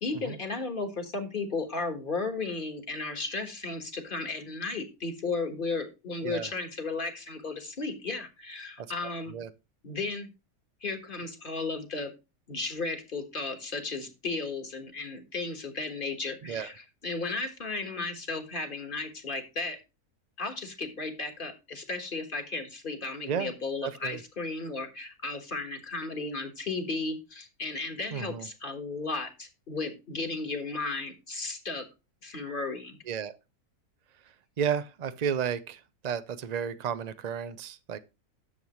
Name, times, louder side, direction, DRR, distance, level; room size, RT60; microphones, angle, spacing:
voice 1, 0.0-9.3 9.8-10.3 10.8-12.1 12.5-19.8 20.4-31.9 32.2-33.0, left 3 dB, 35° left, 1.6 m, -34 dB
voice 2, 16.4-16.7 23.3-23.5 23.8-24.2 28.1-28.5 33.1-33.3 34.6-38.0, right 7 dB, 85° right, 0.3 m, -32 dB
10.0 x 7.1 x 3.0 m
omnidirectional pair, 1.6 m